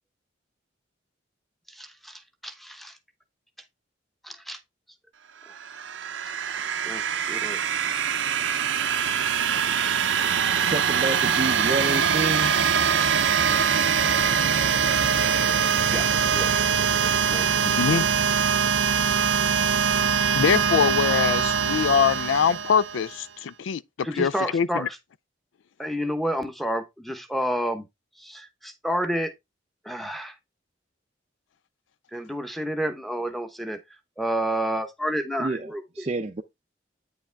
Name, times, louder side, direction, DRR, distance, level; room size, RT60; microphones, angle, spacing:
voice 1, 1.7-2.9 4.2-4.6 6.8-7.6 15.9-16.5 17.0-18.1 24.0-24.9 25.8-27.8 28.2-29.3 29.8-30.3 32.1-33.8 34.2-36.0, equal, ahead, 0.9 m, -30 dB
sound 1, 5.6-23.2, right 7 dB, 80° right, 0.6 m, -23 dB
voice 2, 10.6-12.6 35.4-36.4, right 2 dB, 35° right, 0.5 m, -29 dB
voice 3, 17.6-18.0 19.2-19.7 20.3-24.9, left 7 dB, 85° left, 0.4 m, -24 dB
8.8 x 4.8 x 3.3 m
head